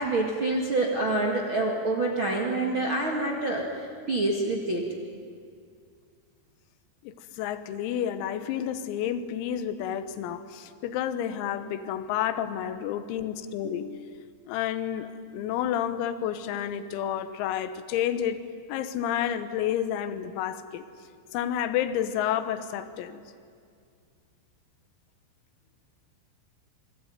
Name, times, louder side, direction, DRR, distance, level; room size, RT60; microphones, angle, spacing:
voice 1, 0.0-4.8, right 2 dB, 55° right, -1 dB, 1.3 m, -27 dB
voice 2, 7.0-18.4 18.7-20.8 21.3-23.2, left 10 dB, 85° left, 11 dB, 3.9 m, -30 dB
27.0 x 22.5 x 9.5 m, 2.2 s
omnidirectional pair, 6.0 m